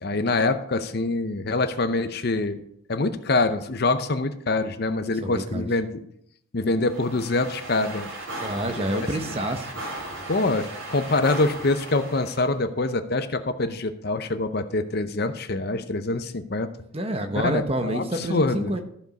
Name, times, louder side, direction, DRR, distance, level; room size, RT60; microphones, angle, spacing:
voice 1, 0.0-2.6 2.9-6.0 6.5-8.1 8.9-9.1 10.3-16.7 17.4-18.8, left 2 dB, 50° left, 10 dB, 0.7 m, -25 dB
voice 2, 5.1-5.7 8.4-9.7 16.9-18.8, right 1 dB, 30° right, 6 dB, 0.9 m, -28 dB
sound 1, 6.8-12.5, right 1 dB, 75° right, 3.6 m, -37 dB
14.0 x 5.2 x 5.3 m, 0.69 s
head